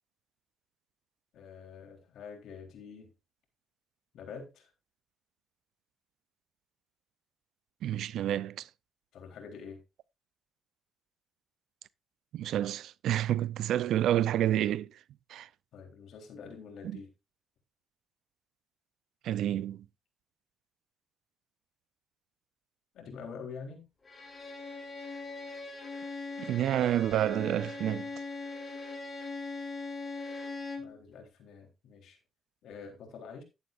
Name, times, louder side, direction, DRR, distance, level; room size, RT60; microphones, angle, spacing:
voice 1, 1.3-3.1 4.1-4.7 9.1-9.8 15.7-17.1 22.9-23.9 30.8-32.2 32.6-33.4, left 5 dB, 75° left, 3.7 m, -46 dB
voice 2, 7.8-8.7 12.3-15.0 15.3-15.5 16.8-17.0 19.2-19.8 26.4-28.1, right 12 dB, 80° right, 0.5 m, -29 dB
Bowed string instrument, 24.1-31.0, left 3 dB, 25° left, 4.2 m, -40 dB
11.5 x 11.5 x 2.5 m
cardioid pair, 90°, 0 cm